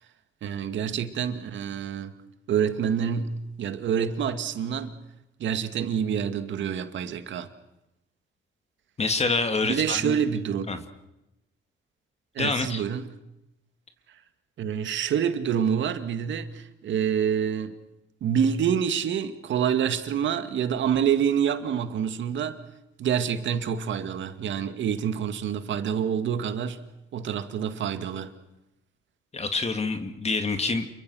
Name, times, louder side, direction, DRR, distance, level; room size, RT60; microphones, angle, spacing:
voice 1, 0.4-2.1 2.5-4.9 5.4-7.5 9.6-10.7 12.3-13.0 14.6-17.8 18.2-22.6 23.0-26.8 27.1-28.3, right 8 dB, 70° right, 2.1 m, -27 dB
voice 2, 9.0-10.2 10.7-10.8 12.4-12.8 29.3-30.9, left 3 dB, 30° left, 2.4 m, -27 dB
28.5 x 23.0 x 6.4 m
cardioid pair, 90°, 20 cm